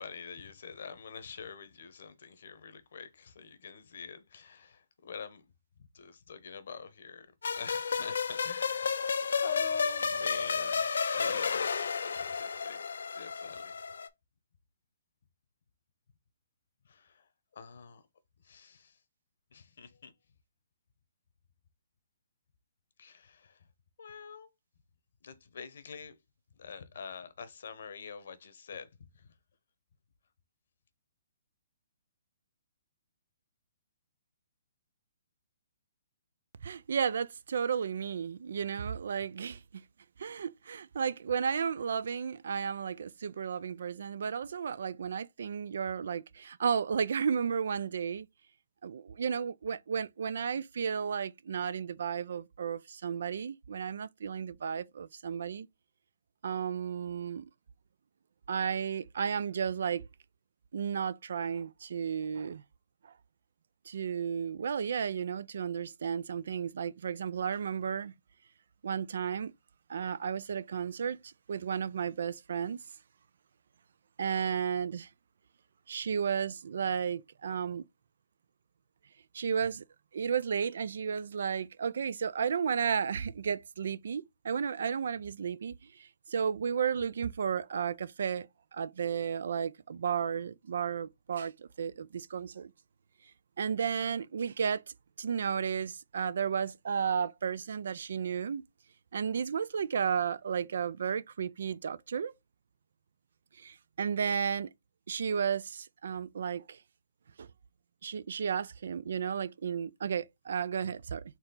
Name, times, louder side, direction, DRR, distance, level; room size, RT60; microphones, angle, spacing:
voice 1, 0.0-5.4 5.9-7.3 7.5-11.7 12.0-12.8 13.1-13.7 16.9-17.2 17.5-18.0 18.4-18.9 19.5-20.1 23.0-23.6 24.0-24.5 25.2-26.1 26.6-28.9 29.2-29.3, left 6 dB, 65° left, 0.9 m, -44 dB
sound 1, 7.4-14.1, left 5 dB, 80° left, 0.5 m, -32 dB
voice 2, 36.6-39.8 40.2-48.3 48.8-55.7 56.4-57.5 58.5-60.0 60.7-62.6 63.0-63.1 63.9-68.1 68.8-69.5 69.9-72.8 74.2-75.1 75.9-77.8 79.3-79.8 80.1-92.7 93.6-98.6 99.1-102.3 103.6-104.7 105.1-106.8 107.4-107.5 108.0-111.2, right 7 dB, 65° right, 0.3 m, -33 dB
4.4 x 2.8 x 3.9 m
hypercardioid pair, 160°, 0 cm